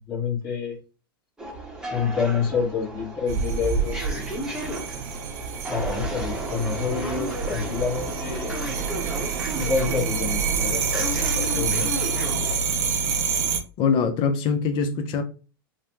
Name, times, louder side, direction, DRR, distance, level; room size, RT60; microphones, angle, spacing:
voice 1, 0.1-0.8 1.9-4.4 5.7-8.9 9.5-11.2 11.5-11.9, left 5 dB, 25° left, 1.3 m, -28 dB
Brussels Subway, 1.4-12.6, equal, 5° right, 0.9 m, -34 dB
sound 1, 3.3-13.6, right 5 dB, 50° right, 0.5 m, -27 dB
voice 2, 13.8-15.2, left 6 dB, 45° left, 0.6 m, -23 dB
3.2 x 2.1 x 2.8 m
hypercardioid pair, 110°, 12 cm